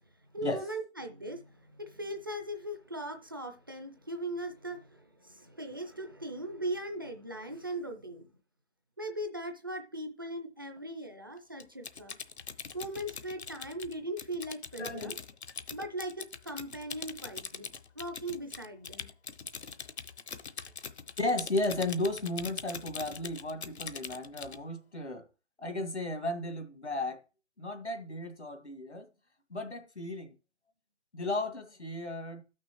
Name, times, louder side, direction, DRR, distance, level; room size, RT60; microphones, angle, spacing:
voice 1, 0.3-8.3 9.0-12.2 12.7-15.2 15.7-17.7 18.0-19.1, right 1 dB, 20° right, 0.4 m, -39 dB
Typing, 11.6-24.6, left 6 dB, 70° left, 0.9 m, -43 dB
voice 2, 14.8-15.1 21.2-25.2 25.6-27.2 27.6-29.1 29.5-30.3 31.1-32.4, left 2 dB, 90° left, 2.1 m, -34 dB
13.5 x 6.1 x 3.0 m
figure-of-eight pair, 145°, 34 cm